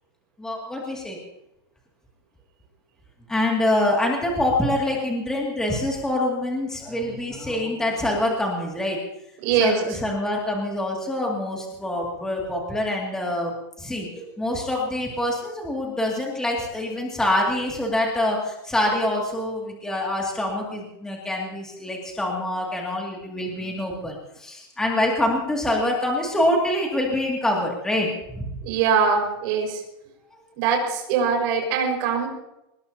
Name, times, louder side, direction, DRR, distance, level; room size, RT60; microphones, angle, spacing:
voice 1, 0.4-1.2 3.3-9.0 9.6-13.5 13.8-28.5, left 1 dB, 5° left, -1 dB, 2.3 m, -25 dB
voice 2, 9.4-9.8 28.6-29.8 30.6-32.3, right 6 dB, 40° right, 1 dB, 5.2 m, -22 dB
25.0 x 19.5 x 2.8 m, 0.88 s
supercardioid pair, 175°, 14 cm